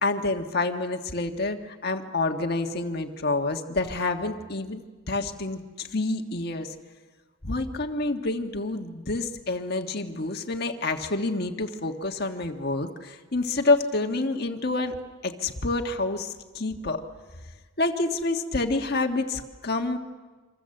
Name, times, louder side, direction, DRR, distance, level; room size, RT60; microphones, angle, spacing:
voice 1, 0.0-4.8 5.1-6.7 7.4-14.9 15.2-17.0 17.8-20.0, left 2 dB, 50° left, 5 dB, 1.6 m, -28 dB
27.5 x 26.0 x 7.8 m, 1.3 s
head